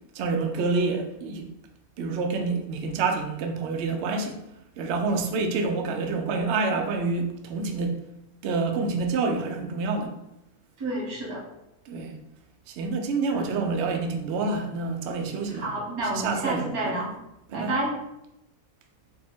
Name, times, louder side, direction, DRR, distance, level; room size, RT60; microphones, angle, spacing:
voice 1, 0.1-1.5 2.0-4.4 4.8-8.0 8.4-10.1 11.9-12.1 12.7-15.7 16.1-17.0 17.5-17.8, right 4 dB, 65° right, 0.7 m, -27 dB
voice 2, 10.8-11.4 13.3-13.4 15.5-17.2 17.5-17.9, right 2 dB, 90° right, 1.6 m, -30 dB
4.3 x 2.1 x 4.3 m
omnidirectional pair, 1.6 m